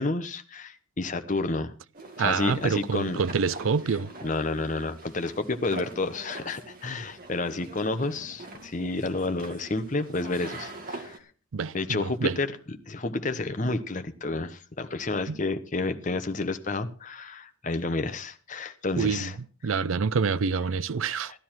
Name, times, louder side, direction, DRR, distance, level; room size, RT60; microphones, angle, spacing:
voice 1, 0.0-1.7 2.2-3.2 4.2-11.2 11.7-19.4 21.1-21.4, left 3 dB, 40° left, 1.0 m, -30 dB
sound 1, 1.9-11.2, right 2 dB, 45° right, 2.1 m, -44 dB
voice 2, 2.2-4.1 11.5-12.3 15.3-15.4 19.0-19.3 19.6-21.3, right 5 dB, 75° right, 0.5 m, -27 dB
15.0 x 11.0 x 4.5 m
head